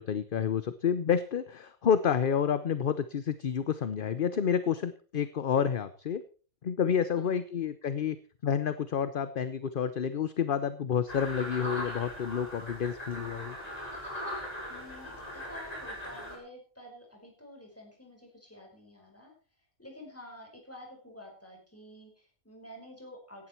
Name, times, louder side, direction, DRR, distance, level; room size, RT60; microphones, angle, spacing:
voice 1, 0.0-6.2 6.6-8.2 8.4-13.6, left 7 dB, 45° left, 13 dB, 0.8 m, -29 dB
sound 1, 11.1-16.4, left 1 dB, 25° left, 5.5 m, -39 dB
voice 2, 14.7-19.3 19.8-23.5, left 1 dB, 10° left, 0 dB, 5.0 m, -50 dB
17.0 x 11.5 x 4.5 m, 0.39 s
omnidirectional pair, 1.4 m